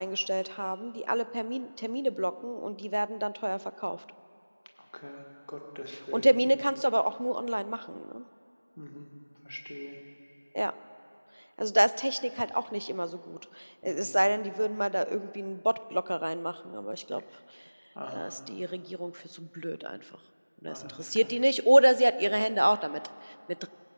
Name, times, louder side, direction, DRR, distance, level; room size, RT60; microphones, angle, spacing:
voice 1, 0.0-4.0 5.9-8.3 10.5-10.7 11.4-17.2 17.5-17.7 18.1-20.1 20.6-23.7, right 1 dB, 55° right, 16 dB, 0.4 m, -28 dB
voice 2, 4.9-6.3 8.8-9.1 9.4-10.0 13.8-14.1 17.9-18.3 20.7-21.1, equal, 50° left, 2 dB, 1.5 m, -42 dB
21.5 x 7.9 x 4.3 m, 3.0 s
figure-of-eight pair, 175°, 0 cm